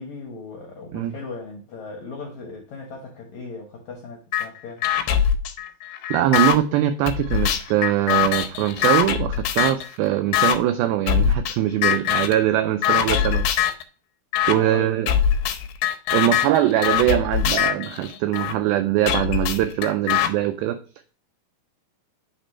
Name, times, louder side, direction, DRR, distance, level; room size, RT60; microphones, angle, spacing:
voice 1, 0.0-4.9 14.5-15.0, left 4 dB, 75° left, 1.7 m, -37 dB
sound 1, 4.3-4.5 4.8-6.6 7.1-9.9 10.3-10.6 11.1-11.6 11.8-12.4 12.8-13.8 14.3-14.6 15.1-18.5 19.1-20.3, left 9 dB, 90° left, 2.8 m, -22 dB
voice 2, 6.1-13.5 14.5-15.1 16.1-20.8, right 12 dB, 90° right, 2.1 m, -22 dB
8.0 x 3.4 x 4.2 m
omnidirectional pair, 4.8 m